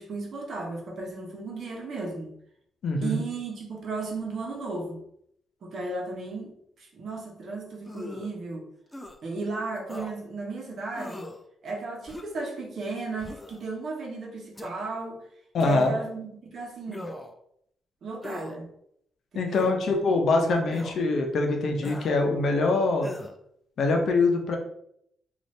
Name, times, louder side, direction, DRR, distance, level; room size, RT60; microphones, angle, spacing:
voice 1, 0.0-2.3 3.0-5.0 5.6-8.7 9.2-11.3 11.6-15.2 15.6-17.1 18.0-18.7 19.3-19.7, right 3 dB, 60° right, 0 dB, 0.9 m, -35 dB
voice 2, 2.8-3.2 15.5-15.9 19.3-23.1 23.8-24.6, left 3 dB, 65° left, 3 dB, 0.6 m, -24 dB
sound 1, 7.8-8.3 8.9-9.2 9.9-10.1 10.9-11.4 12.1-12.4 13.2-13.6 14.6-14.7 15.6-16.0 16.9-17.4 18.2-18.6 19.5-19.8 20.7-21.0 21.8-22.1 23.0-23.4, left 2 dB, 15° left, 0.3 m, -40 dB
2.7 x 2.5 x 3.1 m, 0.72 s
cardioid pair, 85°, 0 cm